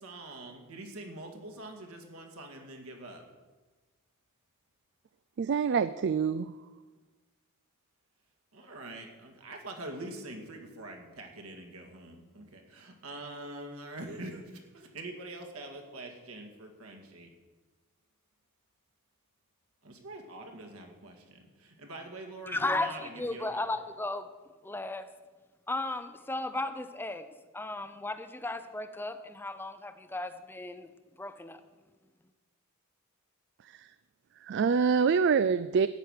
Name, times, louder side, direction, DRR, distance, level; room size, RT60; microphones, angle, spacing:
voice 1, 0.0-3.2 8.5-17.3 19.8-23.6, right 2 dB, 75° right, 3 dB, 2.2 m, -44 dB
voice 2, 5.4-6.5 34.4-35.9, right 6 dB, 50° right, 14 dB, 0.3 m, -25 dB
voice 3, 22.5-24.2 24.6-25.1 25.7-27.2 27.5-30.9 31.2-31.6, left 2 dB, 10° left, 10 dB, 0.5 m, -35 dB
13.0 x 9.3 x 6.5 m, 1.3 s
head